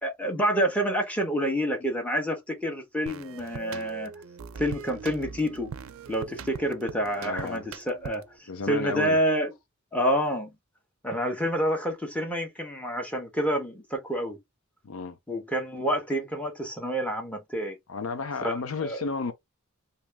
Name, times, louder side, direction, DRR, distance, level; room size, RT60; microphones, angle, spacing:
voice 1, 0.0-4.1 4.6-5.7 6.1-8.3 8.7-9.5 9.9-10.5 11.0-14.4 15.3-17.8 18.4-19.0, equal, 5° left, 1.1 m, -28 dB
sound 1, 3.1-8.4, right 6 dB, 70° right, 0.4 m, -41 dB
voice 2, 7.2-7.7 8.5-9.2 14.8-15.2 17.9-19.3, left 4 dB, 85° left, 0.7 m, -32 dB
2.9 x 2.9 x 3.4 m
head